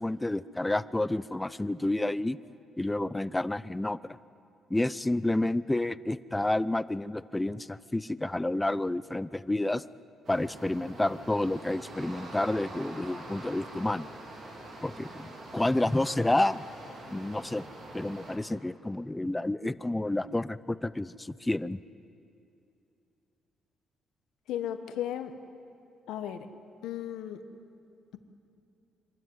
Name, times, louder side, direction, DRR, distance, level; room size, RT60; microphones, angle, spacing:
voice 1, 0.0-2.4 2.8-4.2 4.7-9.8 10.3-14.1 14.8-16.7 17.1-17.7 17.9-21.8, left 1 dB, 10° left, 16 dB, 0.6 m, -30 dB
sound 1, 10.2-18.4, right 2 dB, 60° right, 3.7 m, -45 dB
voice 2, 24.5-25.3 26.1-26.5 26.8-27.4, left 11 dB, 90° left, 9 dB, 1.2 m, -35 dB
26.0 x 12.5 x 9.7 m, 2.7 s
cardioid pair, 90°, 0 cm